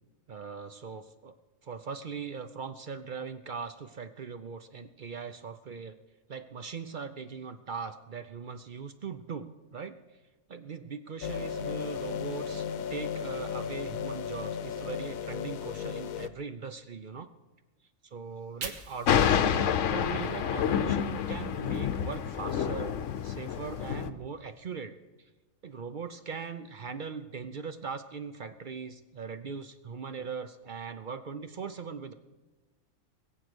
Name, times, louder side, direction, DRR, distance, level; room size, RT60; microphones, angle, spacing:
voice 1, 0.3-1.3 1.6-6.0 6.3-10.0 10.5-17.3 18.0-25.0 25.6-32.1, right 5 dB, 50° right, 10 dB, 0.6 m, -40 dB
sound 1, 11.2-16.3, left 7 dB, 90° left, 1.2 m, -35 dB
Fire, 18.2-21.4 21.8-23.8, right 4 dB, 70° right, 1.7 m, -48 dB
Thunder, 19.1-24.1, left 8 dB, 65° left, 1.0 m, -28 dB
21.0 x 8.0 x 6.2 m, 1.2 s
omnidirectional pair, 1.4 m